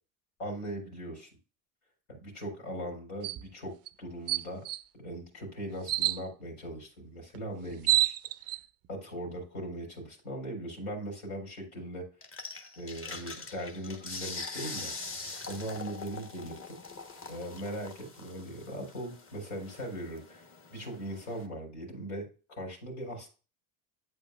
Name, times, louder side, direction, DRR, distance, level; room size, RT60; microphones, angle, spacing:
voice 1, 0.4-1.3 2.1-3.7 4.0-4.6 5.0-8.1 8.9-12.1 12.8-14.9 15.5-16.8 17.3-20.4 20.7-22.3 22.6-23.3, right 1 dB, 80° left, 0 dB, 4.0 m, -39 dB
sound 1, 3.2-3.4 3.9-4.0 4.3-4.8 5.9-6.2 7.3-7.4 7.6-8.6, right 15 dB, 35° right, 0.4 m, -27 dB
sound 2, 12.2-21.5, left 3 dB, 30° left, 1.4 m, -43 dB
8.4 x 7.5 x 2.5 m, 0.33 s
hypercardioid pair, 75°, 43 cm